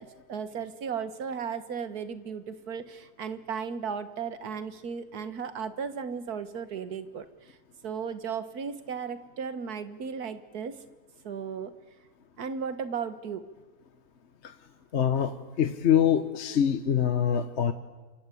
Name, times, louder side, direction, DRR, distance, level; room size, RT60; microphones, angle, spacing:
voice 1, 0.0-7.6 7.8-10.8 11.2-11.7 12.4-13.4, right 6 dB, 75° right, 11 dB, 1.9 m, -35 dB
voice 2, 14.9-17.7, left 9 dB, 50° left, 9 dB, 1.2 m, -24 dB
27.0 x 26.0 x 8.5 m, 1.3 s
omnidirectional pair, 1.6 m